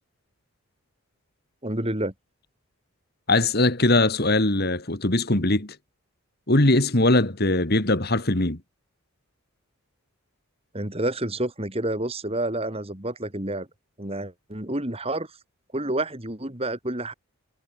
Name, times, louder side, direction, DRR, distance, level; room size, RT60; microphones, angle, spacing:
voice 1, 1.6-2.1 10.7-13.7 14.0-15.3 15.7-17.1, right 1 dB, 25° right, 3.0 m, -29 dB
voice 2, 3.3-5.8 6.5-8.6, left 2 dB, 45° left, 2.2 m, -21 dB
head